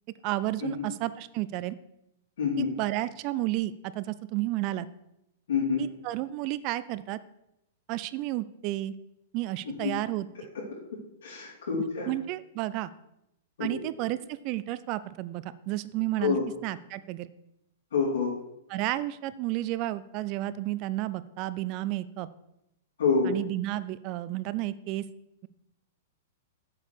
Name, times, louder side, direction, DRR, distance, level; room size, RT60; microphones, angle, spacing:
voice 1, 0.2-1.8 2.6-4.9 5.8-7.2 7.9-8.9 9.3-10.3 12.1-12.9 13.6-16.4 16.6-17.3 18.7-22.3 23.2-25.0, right 16 dB, 35° right, 16 dB, 0.4 m, -32 dB
voice 2, 2.4-2.7 5.5-5.8 9.6-9.9 10.5-10.6 11.2-12.1 13.6-13.8 16.2-16.4 17.9-18.3 23.0-23.3, left 5 dB, 80° left, -7 dB, 3.7 m, -27 dB
8.0 x 4.7 x 7.0 m, 0.85 s
hypercardioid pair, 155°, 0 cm